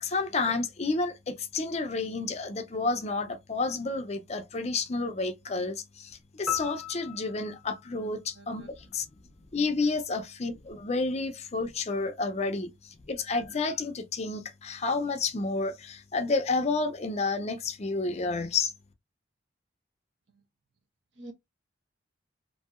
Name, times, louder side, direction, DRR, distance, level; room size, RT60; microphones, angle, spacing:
voice 1, 0.0-9.1 9.5-18.7, left 3 dB, 35° left, 0.5 m, -30 dB
sound 1, 6.5-8.9, left 9 dB, ahead, 0.7 m, -38 dB
voice 2, 8.3-8.7 9.8-9.9 20.3-20.4 21.1-21.3, right 2 dB, 70° right, 0.9 m, -48 dB
2.7 x 2.7 x 2.3 m
head